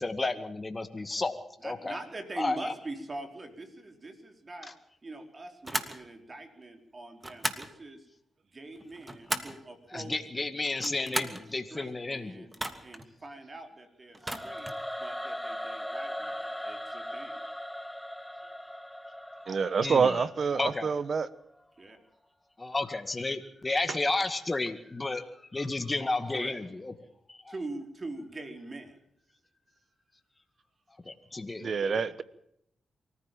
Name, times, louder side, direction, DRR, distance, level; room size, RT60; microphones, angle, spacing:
voice 1, 0.0-1.4 1.6-2.0 2.4-2.7 9.9-12.5 19.8-20.2 20.6-20.9 22.6-25.2 25.5-26.9 27.3-27.5 31.1-32.0, left 2 dB, 30° left, 8 dB, 2.1 m, -32 dB
voice 2, 1.6-4.7 5.0-8.1 8.5-10.5 10.8-11.4 11.7-12.5 12.8-14.7 15.0-17.4 21.8-22.0 26.3-26.6 27.5-28.9, right 2 dB, 40° right, 6 dB, 4.4 m, -43 dB
sound 1, 5.6-6.0 7.2-7.7 8.8-9.6 10.7-11.4 12.5-13.1 14.1-14.8, right 1 dB, 20° right, 2.7 m, -35 dB
Singing / Musical instrument, 14.2-21.3, equal, 5° left, 1.2 m, -39 dB
voice 3, 19.5-21.3 31.6-32.2, right 5 dB, 60° right, 16 dB, 1.2 m, -27 dB
24.0 x 15.0 x 7.5 m, 0.72 s
supercardioid pair, 50°, 0 cm